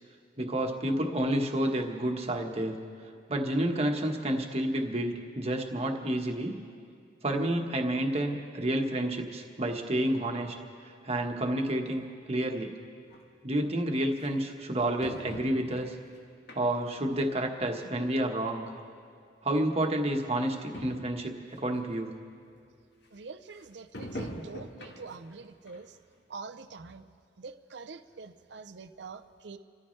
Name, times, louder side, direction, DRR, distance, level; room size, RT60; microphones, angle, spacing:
voice 1, 0.4-2.8 3.3-6.6 7.2-10.5 11.0-12.7 13.4-15.9 16.5-18.6 19.4-22.1, right 1 dB, 35° right, 2 dB, 1.3 m, -30 dB
sound 1, 13.1-13.2 14.2-14.3 15.0-15.9 16.5-17.0 17.4-17.5 18.5-18.6 18.8-18.9 19.7-19.8 20.1-20.2 20.4-20.5 20.7-21.2 21.7-21.8 23.9-25.3 25.7-25.8 26.3-26.4, equal, 65° left, 1.6 m, -42 dB
voice 2, 23.1-26.0 26.3-27.0 27.4-29.6, right 4 dB, 70° right, 9 dB, 0.6 m, -45 dB
28.0 x 14.5 x 3.3 m, 2.3 s
head